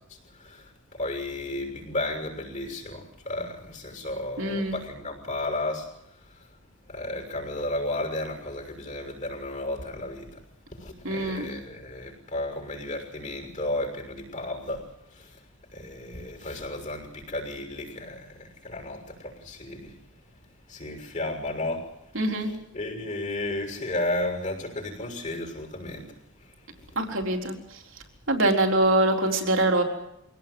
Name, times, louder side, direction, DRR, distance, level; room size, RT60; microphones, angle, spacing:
voice 1, 0.0-5.9 6.9-10.3 10.7-15.4 15.7-20.0 20.7-21.9 22.7-26.1 26.8-26.9, left 2 dB, 35° left, 3 dB, 6.3 m, -33 dB
voice 2, 4.4-4.8 11.0-11.5 22.1-22.5 27.0-27.6 28.3-29.8, right 1 dB, 65° right, 2 dB, 4.0 m, -24 dB
25.0 x 18.0 x 7.9 m, 0.80 s
head